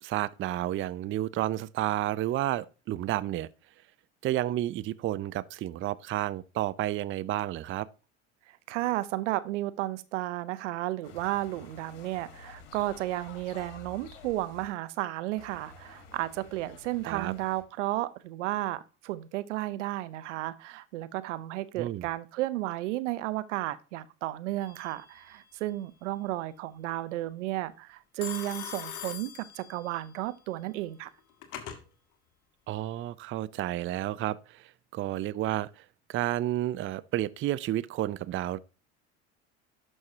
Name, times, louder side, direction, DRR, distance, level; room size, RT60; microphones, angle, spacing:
voice 1, 0.0-3.5 4.2-7.9 17.0-17.3 21.8-22.1 32.7-38.6, right 14 dB, 35° right, 0.5 m, -31 dB
voice 2, 8.5-31.1, right 16 dB, 80° right, 0.7 m, -33 dB
sound 1, 11.0-14.7 15.4-17.6, left 5 dB, 80° left, 1.9 m, -50 dB
Telephone, 24.6-25.1 28.2-30.1 31.0-31.8, left 8 dB, 60° left, 1.8 m, -41 dB
11.0 x 6.4 x 2.7 m
hypercardioid pair, 80°, 35 cm